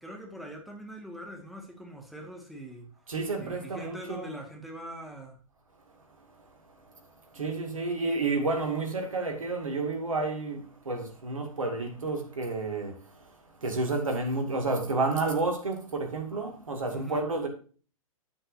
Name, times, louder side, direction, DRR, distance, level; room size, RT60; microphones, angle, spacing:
voice 1, 0.0-2.9 3.4-5.4 16.9-17.3, equal, ahead, 1.8 m, -43 dB
voice 2, 3.1-4.3 7.3-12.9 13.6-17.5, right 3 dB, 70° right, 2.3 m, -30 dB
11.0 x 7.5 x 2.7 m
figure-of-eight pair, 115°, 18 cm